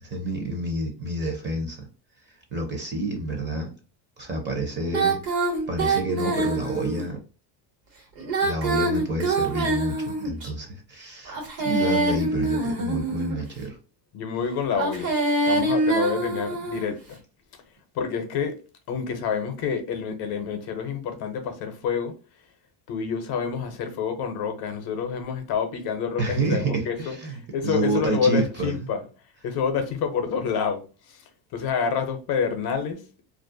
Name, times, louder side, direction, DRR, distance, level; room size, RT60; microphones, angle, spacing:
voice 1, 0.0-1.9 2.5-3.7 4.2-5.2 5.7-7.2 8.4-11.4 11.6-13.8 26.2-27.4 27.6-28.7, right 2 dB, 25° right, 0.6 m, -28 dB
Female singing, 4.9-7.1 8.2-10.5 11.3-13.4 14.7-16.9, right 2 dB, 70° right, 1.3 m, -25 dB
voice 2, 14.1-15.2 15.5-17.2 17.9-18.5 18.9-22.1 22.9-29.0 29.4-30.8 31.1-31.2 31.5-33.0, left 6 dB, 55° left, 0.7 m, -28 dB
2.4 x 2.1 x 2.6 m
cardioid pair, 125°, 47 cm